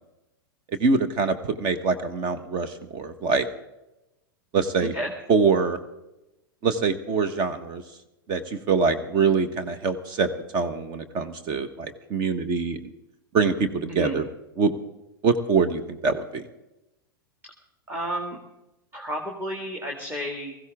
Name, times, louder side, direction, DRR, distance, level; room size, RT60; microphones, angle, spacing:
voice 1, 0.7-3.5 4.5-4.9 5.3-5.8 6.6-7.8 8.3-12.8 13.3-14.2 14.6-14.7 15.2-16.4, right 4 dB, 40° right, 10 dB, 1.3 m, -24 dB
voice 2, 17.9-18.4 18.9-20.6, right 1 dB, 15° right, 1 dB, 2.3 m, -31 dB
18.5 x 15.5 x 3.7 m, 0.95 s
hypercardioid pair, 100°, 12 cm